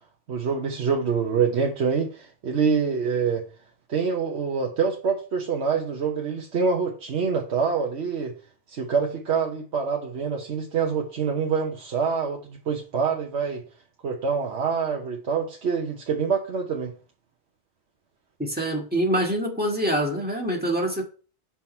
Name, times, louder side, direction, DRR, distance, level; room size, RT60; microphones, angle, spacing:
voice 1, 0.3-3.4 3.9-8.3 8.7-13.6 14.0-16.9, right 6 dB, 85° right, 1.2 m, -26 dB
voice 2, 18.4-21.0, right 1 dB, 10° right, 1.7 m, -25 dB
6.2 x 5.7 x 4.4 m
omnidirectional pair, 1.1 m